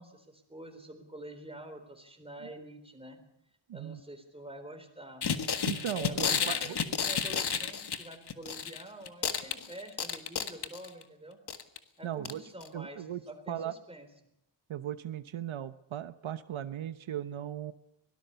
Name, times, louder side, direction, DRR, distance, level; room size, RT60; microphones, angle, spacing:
voice 1, 0.0-3.2 3.7-5.2 5.9-11.4 12.0-14.1, right 1 dB, 10° right, 5 dB, 3.9 m, -47 dB
voice 2, 3.7-4.0 5.6-6.8 12.0-12.4 12.7-13.2 13.5-13.7 14.7-17.7, right 11 dB, 80° right, 12 dB, 1.0 m, -37 dB
sound 1, 5.2-8.8 9.1-11.0 11.5-11.8 12.2-12.3 12.6-12.7, left 7 dB, 55° left, 1.7 m, -31 dB
24.0 x 18.5 x 6.9 m, 0.80 s
wide cardioid pair, 145°, 47 cm